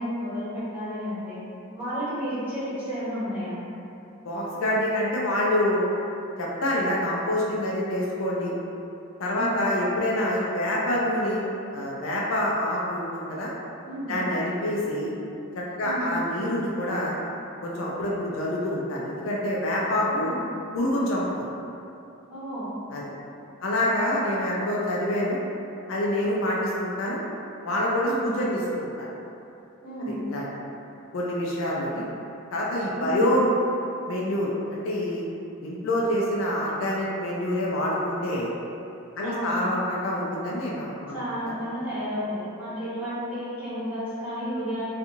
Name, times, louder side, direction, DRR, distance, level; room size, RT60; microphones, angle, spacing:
voice 1, 0.0-1.4 1.7-3.6 9.3-9.6 13.8-14.2 15.8-16.1 20.0-20.4 22.3-22.7 28.0-28.3 29.8-30.1 32.9-33.3 39.2-39.6 41.1-44.8, equal, 10° right, -15 dB, 1.2 m, -32 dB
voice 2, 4.2-5.8 6.4-8.5 9.2-11.4 11.7-13.5 14.1-15.1 15.6-17.2 17.6-20.3 20.7-21.2 22.9-23.0 23.6-25.4 25.9-27.2 27.6-29.1 30.0-30.4 31.1-32.0 32.5-33.5 34.0-35.3 35.6-38.5 39.2-41.2 41.4-41.5, left 1 dB, 70° left, -4 dB, 0.4 m, -26 dB
2.5 x 2.4 x 2.8 m, 2.8 s
head